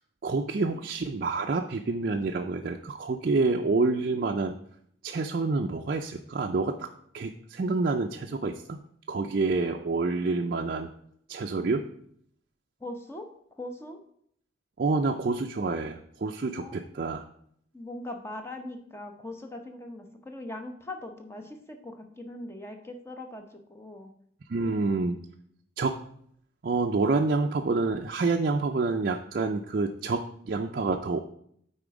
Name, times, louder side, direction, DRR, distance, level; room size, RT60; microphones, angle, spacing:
voice 1, 0.2-4.5 5.0-6.9 7.1-8.8 9.1-10.9 11.3-11.9 14.8-17.2 24.5-25.2 25.8-26.0 26.6-31.2, right 3 dB, 50° right, 2 dB, 0.4 m, -28 dB
voice 2, 12.8-13.3 13.6-14.0 16.6-16.8 17.7-24.1 24.7-25.0, left 1 dB, 15° left, 5 dB, 0.8 m, -41 dB
8.8 x 4.2 x 4.8 m, 0.67 s
head